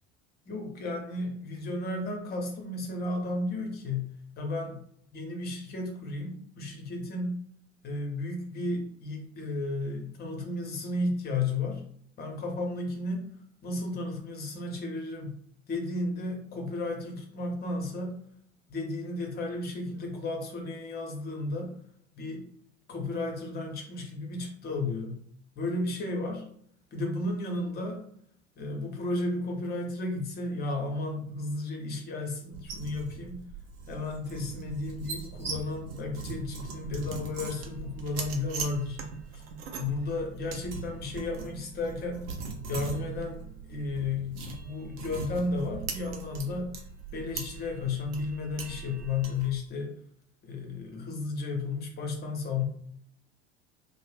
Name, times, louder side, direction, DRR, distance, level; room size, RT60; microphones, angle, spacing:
voice 1, 0.4-4.8 5.1-7.4 7.8-11.8 12.2-13.3 13.6-15.3 15.7-18.2 18.7-21.8 22.2-22.4 22.9-25.2 25.6-26.5 26.9-28.1 28.6-33.5 33.9-39.0 39.3-39.4 39.8-42.3 42.7-46.7 47.1-49.9 50.4-52.6, left 2 dB, 30° left, 2 dB, 0.8 m, -33 dB
sound 1, 32.5-49.5, right 5 dB, 60° right, 0.7 m, -40 dB
2.5 x 2.1 x 3.3 m, 0.66 s
figure-of-eight pair, 70°, 35 cm